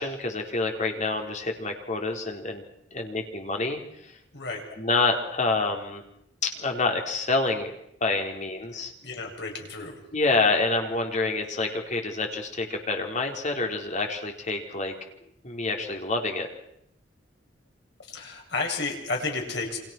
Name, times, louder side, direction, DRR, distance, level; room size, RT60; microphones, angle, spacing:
voice 1, 0.0-2.6 2.9-4.2 4.8-6.0 6.4-7.7 8.0-8.9 10.1-14.9 15.4-16.5, left 3 dB, 40° left, 3 dB, 4.3 m, -27 dB
voice 2, 9.0-10.0 18.1-19.8, left 3 dB, 65° left, 2 dB, 7.7 m, -32 dB
29.5 x 26.0 x 6.3 m, 0.75 s
head